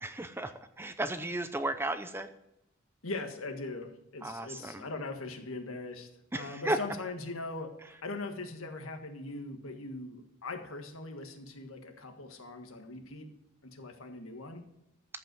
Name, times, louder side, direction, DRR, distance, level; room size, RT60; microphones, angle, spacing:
voice 1, 0.0-2.3 4.2-4.9 6.3-6.8, right 1 dB, 10° right, 10 dB, 0.5 m, -34 dB
voice 2, 3.0-13.3 13.6-14.6, left 2 dB, 80° left, 5 dB, 1.6 m, -41 dB
14.0 x 5.5 x 6.1 m, 0.86 s
head